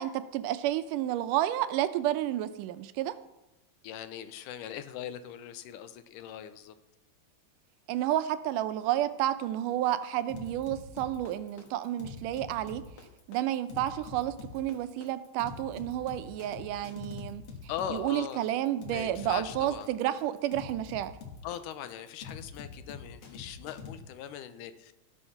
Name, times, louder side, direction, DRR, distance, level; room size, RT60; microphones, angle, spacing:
voice 1, 0.0-3.2 7.9-12.8 13.3-17.4 17.9-21.1, right 13 dB, 90° right, 12 dB, 2.3 m, -31 dB
voice 2, 3.8-6.7 17.7-18.4 18.9-19.9 21.4-24.9, left 10 dB, 90° left, 11 dB, 2.4 m, -40 dB
sound 1, 10.3-23.9, left 5 dB, 50° left, 2.2 m, -45 dB
18.0 x 6.4 x 5.8 m, 0.92 s
omnidirectional pair, 3.6 m